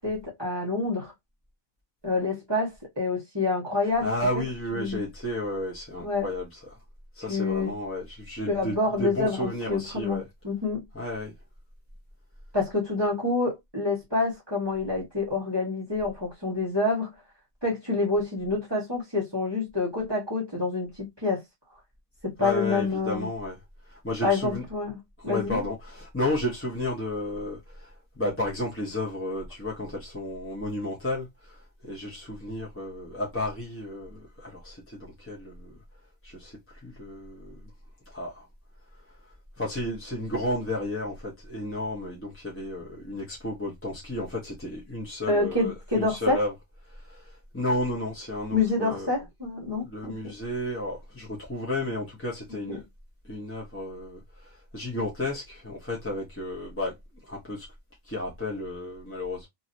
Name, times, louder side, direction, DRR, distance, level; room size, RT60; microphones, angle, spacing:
voice 1, 0.0-1.1 2.0-4.1 4.3-4.4 4.7-5.0 6.0-6.3 7.3-7.7 8.5-10.2 10.4-10.8 12.5-17.1 17.6-21.4 22.2-23.3 24.2-25.0 25.2-25.6 45.3-46.4 48.5-50.1 52.7-52.8, left 3 dB, 20° right, 1.3 m, -27 dB
voice 2, 4.0-6.8 7.1-10.3 10.9-11.3 22.4-23.6 23.8-24.6 25.2-35.8 36.2-37.7 38.1-38.4 39.0-46.5 46.9-49.1 49.7-52.8 53.2-57.0 57.2-57.7 58.0-59.5, left 1 dB, 10° left, 0.8 m, -33 dB
3.0 x 2.8 x 2.5 m
omnidirectional pair, 1.4 m